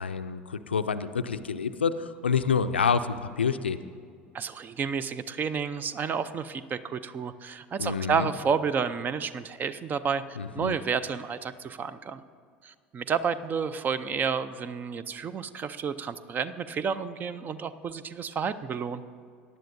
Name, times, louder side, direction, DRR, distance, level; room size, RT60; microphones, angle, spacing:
voice 1, 0.0-3.8 7.8-8.3 10.4-10.8, left 6 dB, 85° left, 12 dB, 0.4 m, -28 dB
voice 2, 4.3-10.2 10.5-12.2 12.6-19.0, right 6 dB, 30° right, 15 dB, 0.5 m, -30 dB
18.0 x 10.5 x 2.6 m, 2.1 s
figure-of-eight pair, 70°, 6 cm